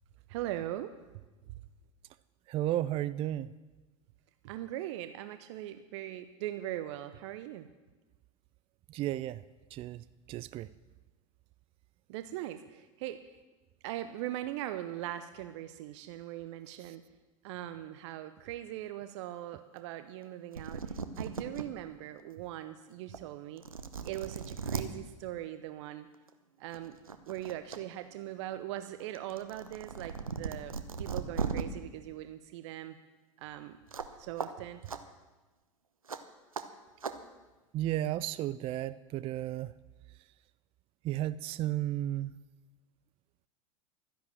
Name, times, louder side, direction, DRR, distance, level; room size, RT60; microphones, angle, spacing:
voice 1, 0.3-0.9 4.4-7.7 12.1-13.2 13.8-17.0 17.4-23.6 24.0-26.1 26.6-27.0 27.3-30.7 31.0-33.0 33.4-33.8 34.2-34.8, right 13 dB, 55° right, 11 dB, 0.7 m, -40 dB
voice 2, 2.5-3.5 8.9-9.4 9.7-10.7 16.9-17.0 37.7-39.7 41.0-42.3, right 13 dB, 35° right, 17 dB, 0.4 m, -33 dB
sound 1, 20.3-20.4 20.5-21.6 22.2-22.3 23.1-23.2 23.6-24.8 26.1-26.3 26.7-27.8 28.1-31.6 33.9-34.1 34.4-34.5 34.9-35.0 36.1-36.2 36.5-36.6 37.0-37.1, right 6 dB, 90° right, 0.9 m, -37 dB
12.5 x 10.5 x 7.5 m, 1.2 s
figure-of-eight pair, 85°, 17 cm